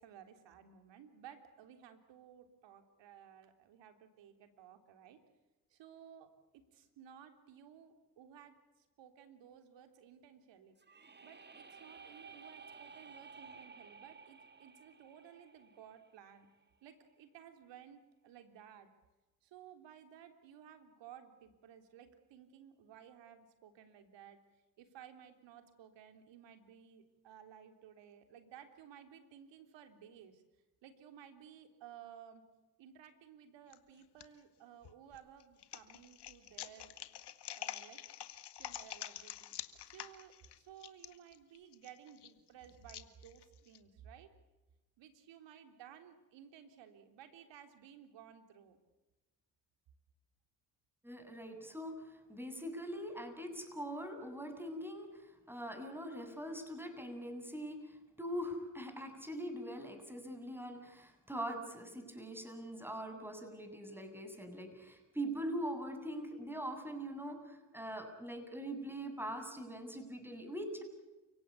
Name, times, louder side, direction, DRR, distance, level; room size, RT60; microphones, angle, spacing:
voice 1, 0.0-5.2 5.7-8.6 9.0-10.7 11.2-16.5 16.8-18.9 19.4-24.4 24.8-30.4 30.8-32.4 32.8-36.9 37.5-38.2 38.6-39.6 39.8-44.3 45.0-48.8, right 9 dB, 75° right, 7 dB, 3.6 m, -57 dB
sound 1, 10.8-16.6, right 5 dB, 25° right, 2.0 m, -55 dB
sound 2, 33.7-34.2 34.8-43.8, left 11 dB, 65° left, 2.0 m, -47 dB
voice 2, 51.0-70.8, equal, 5° right, 6 dB, 7.9 m, -42 dB
30.0 x 17.5 x 8.4 m, 1.1 s
supercardioid pair, 60°, 43 cm